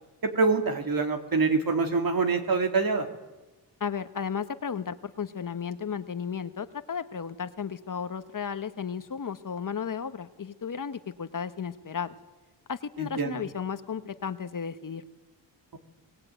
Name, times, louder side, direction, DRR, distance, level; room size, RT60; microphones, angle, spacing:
voice 1, 0.3-3.1 13.0-13.4, right 4 dB, 55° right, 5 dB, 3.1 m, -25 dB
voice 2, 3.8-12.2 12.7-15.0, left 6 dB, 45° left, 11 dB, 1.3 m, -34 dB
24.0 x 19.5 x 9.3 m, 1.1 s
cardioid pair, 70°, 43 cm